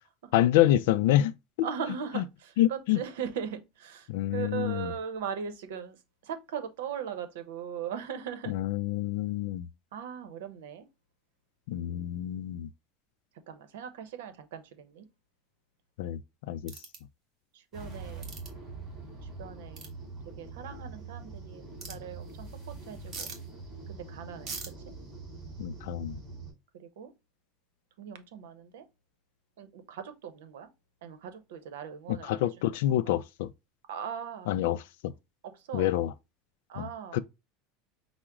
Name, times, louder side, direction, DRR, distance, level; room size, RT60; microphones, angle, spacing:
voice 1, 0.3-1.3 2.2-2.3 2.6-3.0 4.1-4.9 8.5-9.7 11.7-12.7 16.0-16.2 16.5-16.7 25.6-26.2 32.1-33.5 34.5-35.1 35.7-36.1 36.8-37.2, left 13 dB, 75° left, 0.3 m, -27 dB
voice 2, 1.6-6.0 6.2-8.5 9.9-10.9 11.8-12.5 13.5-15.1 17.5-18.2 19.4-19.9 20.4-23.3 23.9-24.5 26.7-27.1 28.0-28.8 29.6-30.7 31.0-32.5 33.9-34.5 35.4-36.0 36.7-37.2, right 7 dB, 85° right, 0.8 m, -39 dB
sound 1, 16.7-17.0 18.2-18.5 19.8-19.9 21.8-21.9 23.1-23.4 24.5-24.7, right 5 dB, 35° right, 1.2 m, -40 dB
sound 2, 17.7-26.5, right 3 dB, 10° right, 2.6 m, -44 dB
5.8 x 2.1 x 3.6 m
supercardioid pair, 150°, 0 cm